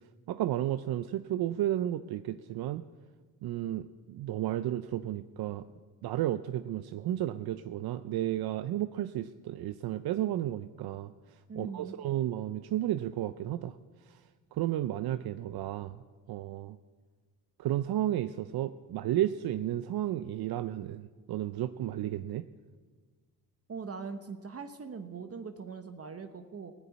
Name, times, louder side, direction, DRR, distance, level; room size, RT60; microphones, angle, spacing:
voice 1, 0.3-2.8 3.4-5.6 6.0-13.8 14.0-14.2 14.5-16.0 16.3-16.8 17.6-22.5, right 13 dB, 75° right, 12 dB, 0.6 m, -33 dB
voice 2, 11.5-11.9 23.7-26.7, right 5 dB, 40° right, 8 dB, 1.0 m, -41 dB
16.0 x 7.2 x 9.5 m, 1.5 s
cardioid pair, 85°, 37 cm